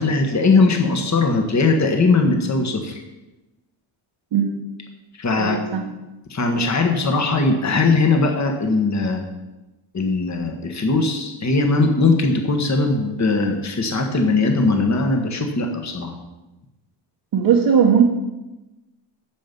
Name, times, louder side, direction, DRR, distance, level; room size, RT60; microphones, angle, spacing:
voice 1, 0.0-2.9 5.2-5.6 6.3-9.2 9.9-16.1, left 3 dB, 35° left, 3 dB, 1.4 m, -19 dB
voice 2, 5.4-5.9 17.3-18.0, right 7 dB, 65° right, -2 dB, 1.3 m, -17 dB
10.5 x 7.1 x 5.3 m, 1.0 s
cardioid pair, 120°, 48 cm